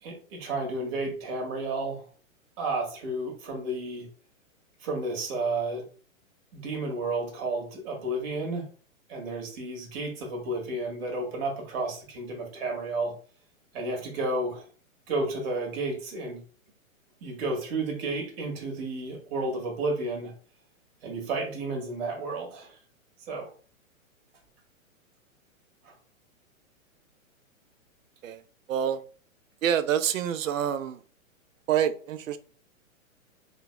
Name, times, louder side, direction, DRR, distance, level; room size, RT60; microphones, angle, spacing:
voice 1, 0.0-2.0 2.6-4.1 4.8-5.8 6.5-8.7 9.1-13.1 13.7-14.7 15.1-16.4 17.2-20.3 21.0-22.8 23.3-23.5 25.8-25.9, right 2 dB, 45° right, 1.4 m, -32 dB
voice 2, 28.7-29.0 29.6-31.0 31.7-32.4, right 9 dB, 70° right, 0.5 m, -27 dB
3.9 x 2.2 x 2.4 m
hypercardioid pair, 130°, 41 cm